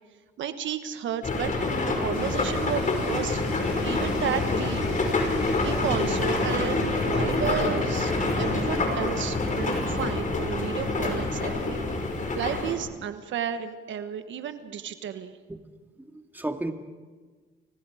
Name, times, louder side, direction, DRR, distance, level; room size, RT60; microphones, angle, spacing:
voice 1, 0.4-1.5 1.8-3.4 3.8-4.9 5.1-8.1 8.4-11.9 12.3-15.4, right 8 dB, 70° right, 9 dB, 1.3 m, -32 dB
sound 1, 1.2-12.7, left 2 dB, 40° left, 5.7 m, -26 dB
Domestic sounds home sounds, 2.1-7.1, left 5 dB, 80° left, 5.9 m, -44 dB
Drum kit, 4.9-10.0, right 3 dB, 35° right, 4.4 m, -44 dB
voice 2, 16.0-16.7, right 2 dB, 10° right, 5 dB, 2.1 m, -33 dB
30.0 x 23.0 x 5.0 m, 1.4 s
cardioid pair, 90°, 20 cm